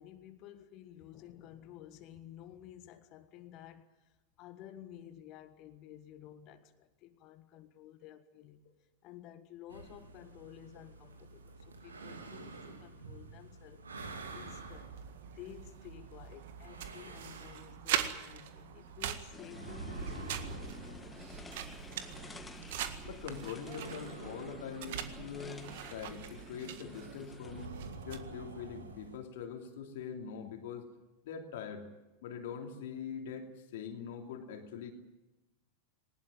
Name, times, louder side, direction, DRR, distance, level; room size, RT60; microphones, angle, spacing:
voice 1, 0.0-8.6 9.0-14.9 15.3-21.9, left 11 dB, 40° left, 1.6 m, -53 dB
sound 1, 9.7-29.2, right 3 dB, 70° right, 2.9 m, -49 dB
sound 2, 14.0-28.2, right 10 dB, 55° right, 1.8 m, -43 dB
sound 3, 19.3-27.7, left 3 dB, 10° left, 2.0 m, -51 dB
voice 2, 23.0-27.7 28.0-30.9 31.2-31.9 32.2-34.9, left 7 dB, 55° left, 3.0 m, -43 dB
20.5 x 19.5 x 9.2 m
figure-of-eight pair, 90°, 0 cm